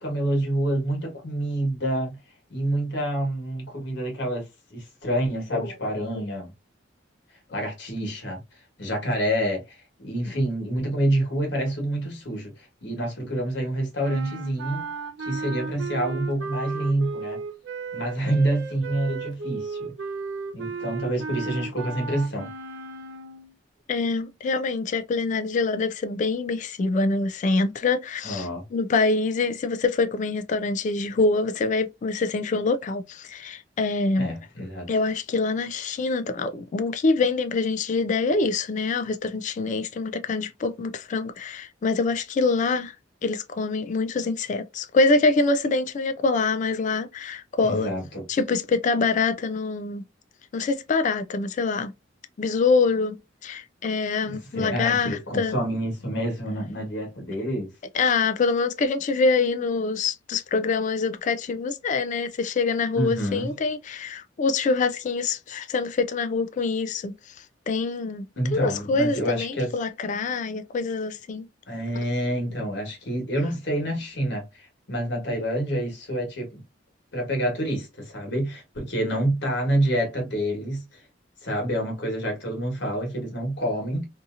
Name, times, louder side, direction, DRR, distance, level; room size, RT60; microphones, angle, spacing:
voice 1, 0.0-2.2 2.5-4.4 4.7-6.5 7.5-8.4 8.8-14.9 15.2-17.4 17.9-19.9 20.5-22.5 28.2-28.6 34.2-34.9 47.6-48.2 54.2-57.7 62.9-63.5 68.4-69.7 71.7-76.6 77.1-81.0 81.4-84.1, right 1 dB, 65° left, 1.3 m, -27 dB
sound 1, 14.0-23.5, right 4 dB, 80° right, 0.5 m, -35 dB
voice 2, 23.9-34.3 34.9-42.9 43.2-47.9 48.3-50.0 50.5-51.9 52.4-55.6 57.9-67.1 67.7-68.3 68.5-71.4, left 3 dB, 40° left, 0.3 m, -25 dB
2.7 x 2.7 x 2.4 m
head